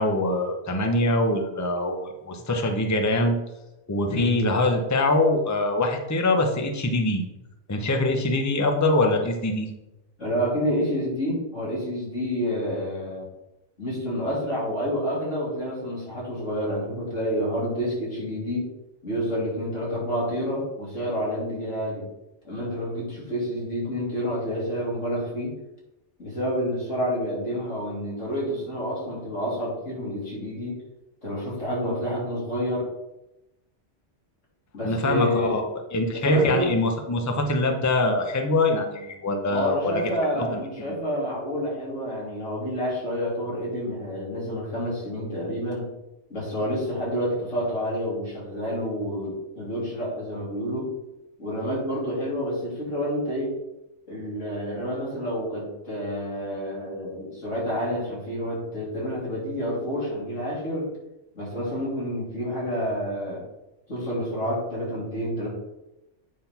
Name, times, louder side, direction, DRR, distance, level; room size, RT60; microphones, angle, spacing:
voice 1, 0.0-3.4 3.9-7.2 7.7-9.7 34.8-35.6 35.9-40.1 40.4-40.6, left 2 dB, 15° left, 4 dB, 0.8 m, -23 dB
voice 2, 4.0-4.5 10.2-13.2 13.8-18.7 19.0-22.1 22.4-25.6 26.2-30.8 31.2-32.9 34.7-35.6 36.1-36.7 39.5-45.9 46.3-50.9 51.4-53.6 54.1-60.9 61.3-63.4 63.9-65.5, equal, 90° left, -5 dB, 3.2 m, -29 dB
8.6 x 3.8 x 5.9 m, 0.94 s
omnidirectional pair, 1.2 m